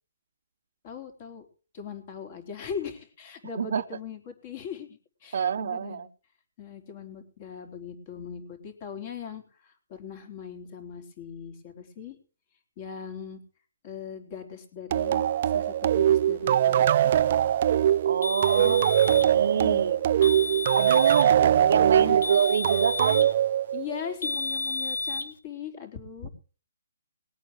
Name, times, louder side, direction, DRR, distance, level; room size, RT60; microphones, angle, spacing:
voice 1, 0.8-1.5 1.7-6.1 6.6-12.2 12.8-13.4 13.8-17.1 18.6-18.8 19.3-19.9 21.1-22.5 23.7-26.3, left 7 dB, 35° left, 6 dB, 4.0 m, -40 dB
voice 2, 5.3-6.1 18.0-20.0 20.7-23.3, right 7 dB, 60° right, 11 dB, 0.9 m, -27 dB
sound 1, 14.9-24.1, right 10 dB, 40° right, 0.6 m, -22 dB
sound 2, 18.2-19.3 20.2-21.3 22.2-23.4 24.2-25.3, left 2 dB, 70° left, 2.9 m, -32 dB
20.0 x 8.9 x 4.8 m, 0.37 s
hypercardioid pair, 160°, 0 cm